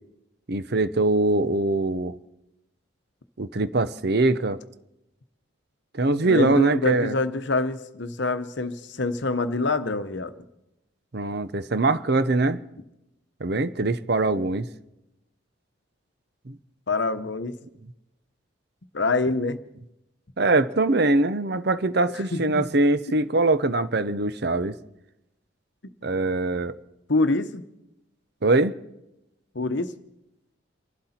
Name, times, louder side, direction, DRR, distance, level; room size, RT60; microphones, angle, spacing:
voice 1, 0.5-2.2 3.4-4.6 5.9-7.1 11.1-12.6 13.4-14.7 16.5-16.6 20.4-24.8 26.0-26.8 28.4-28.7, right 2 dB, 50° right, 0.7 m, -22 dB
voice 2, 6.2-10.5 16.9-17.6 18.9-19.6 22.1-22.6 23.1-23.2 25.8-25.9 27.1-27.6 29.5-29.9, left 3 dB, 60° left, 0.9 m, -26 dB
27.5 x 12.0 x 4.3 m
head